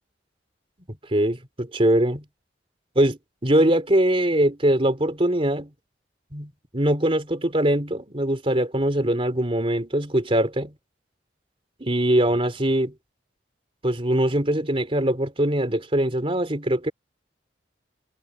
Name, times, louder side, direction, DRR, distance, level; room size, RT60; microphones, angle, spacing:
voice 1, 1.1-2.2 3.0-5.7 6.3-10.7 11.8-12.9 13.8-16.9, right 1 dB, 30° right, 3.4 m, -22 dB
head